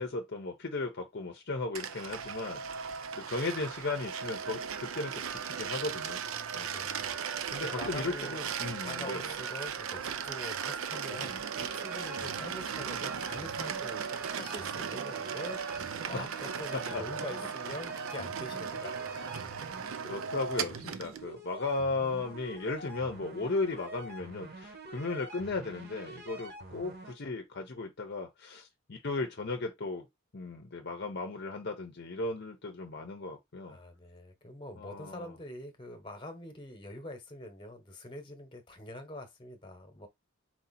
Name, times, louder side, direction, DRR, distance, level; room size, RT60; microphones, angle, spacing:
voice 1, 0.0-6.2 6.5-6.7 7.5-9.3 16.1-16.5 16.9-17.2 20.0-30.1 30.3-33.8 34.8-35.3, left 3 dB, 50° left, 0.7 m, -36 dB
sound 1, 1.8-21.2, right 7 dB, 70° right, 0.5 m, -37 dB
voice 2, 6.2-8.4 8.8-19.3 33.6-40.1, left 1 dB, 25° left, 1.1 m, -45 dB
sound 2, 11.1-27.1, right 2 dB, 45° right, 1.2 m, -47 dB
4.6 x 2.8 x 4.1 m
head